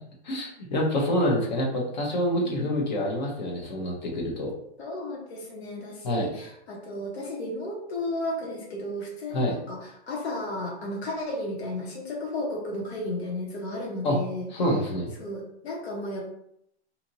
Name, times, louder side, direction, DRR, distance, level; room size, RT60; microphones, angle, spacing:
voice 1, 0.2-4.5 6.0-6.3 9.3-9.6 14.0-14.2 14.5-15.1, equal, 40° left, -1 dB, 0.7 m, -26 dB
voice 2, 2.4-2.8 4.8-14.5 15.2-16.2, left 1 dB, 70° left, -2 dB, 1.1 m, -34 dB
2.8 x 2.5 x 2.7 m, 0.74 s
hypercardioid pair, 170°, 33 cm